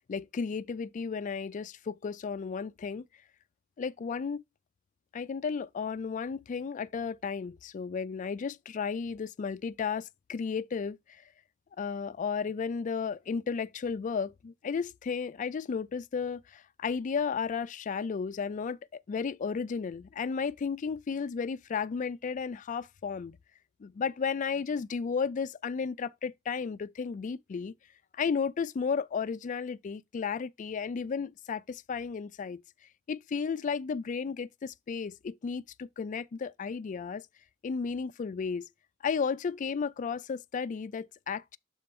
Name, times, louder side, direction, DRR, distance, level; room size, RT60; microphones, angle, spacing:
voice 1, 0.1-3.0 3.8-4.4 5.1-11.2 11.8-23.4 23.8-27.7 28.1-32.6 33.1-37.2 37.6-38.7 39.0-41.6, left 5 dB, 40° left, 0.3 m, -33 dB
6.7 x 3.7 x 4.2 m
head